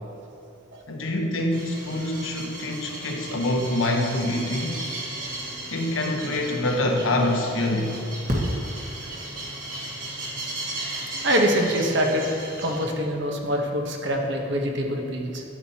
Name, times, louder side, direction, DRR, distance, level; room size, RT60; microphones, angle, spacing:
voice 1, 0.9-4.8 5.7-8.0, left 1 dB, 70° left, 2 dB, 1.0 m, -25 dB
sound 1, 1.5-12.8, right 1 dB, 40° right, 1.6 m, -34 dB
voice 2, 11.2-12.3 12.6-15.4, equal, 55° right, 2 dB, 1.0 m, -24 dB
10.5 x 8.6 x 2.9 m, 2.8 s
head